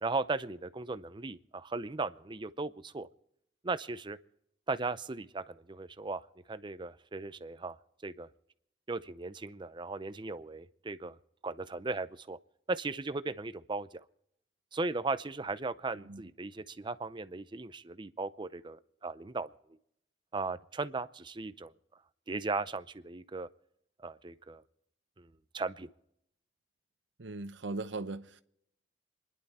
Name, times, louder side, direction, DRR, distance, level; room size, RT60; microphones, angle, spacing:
voice 1, 0.0-3.1 3.6-4.2 4.7-6.2 6.5-7.8 8.0-8.3 8.9-11.2 11.4-12.4 12.7-14.0 14.7-19.5 20.3-21.7 22.3-23.5 24.0-24.6 25.2-25.9, right 3 dB, 25° right, 0.6 m, -37 dB
voice 2, 27.2-28.4, right 2 dB, 90° right, 0.8 m, -39 dB
27.5 x 11.0 x 4.2 m
head